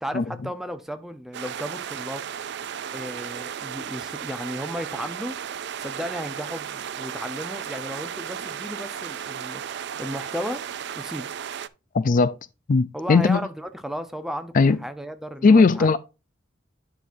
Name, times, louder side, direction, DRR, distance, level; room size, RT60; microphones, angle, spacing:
voice 1, 0.0-2.2 2.9-5.4 5.8-9.6 10.0-10.6 11.0-11.3 12.9-15.9, equal, ahead, 0.7 m, -34 dB
sound 1, 1.3-11.7, right 8 dB, 60° right, 0.4 m, -34 dB
voice 2, 11.9-12.4 12.7-13.4 14.5-14.8 15.4-16.0, left 4 dB, 45° left, 0.4 m, -17 dB
9.8 x 6.0 x 2.7 m
head